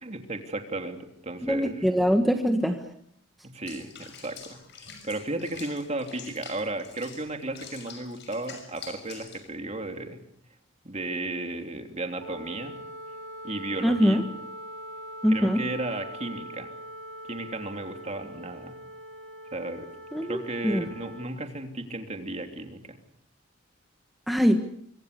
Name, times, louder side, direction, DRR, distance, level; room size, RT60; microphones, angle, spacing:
voice 1, 0.0-1.9 3.4-10.2 10.8-12.7 13.4-14.2 15.3-16.7 17.3-18.7 19.5-19.9 20.2-23.0, right 2 dB, 35° right, 4 dB, 3.1 m, -34 dB
voice 2, 1.4-2.8 13.8-14.2 15.2-15.6 20.1-20.4 20.6-20.8 24.3-24.6, equal, ahead, 4 dB, 1.4 m, -22 dB
Water / Bathtub (filling or washing), 3.7-9.5, left 6 dB, 60° left, 6.1 m, -46 dB
Wind instrument woodwind instrument, 12.2-21.4, right 1 dB, 90° right, 2.7 m, -42 dB
25.0 x 25.0 x 6.8 m, 0.69 s
head